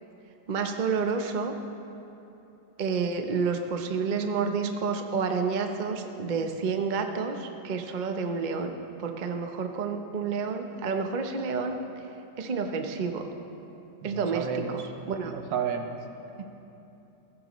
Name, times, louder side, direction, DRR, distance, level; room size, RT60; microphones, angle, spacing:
voice 1, 0.5-1.5 2.8-8.7 9.0-11.8 12.4-13.3 14.0-14.8 15.1-15.3 16.4-16.5, right 5 dB, 50° right, 5 dB, 0.5 m, -29 dB
voice 2, 14.0-14.8 15.2-16.0, right 7 dB, 80° right, 5 dB, 1.5 m, -32 dB
16.0 x 14.5 x 3.1 m, 3.0 s
omnidirectional pair, 1.9 m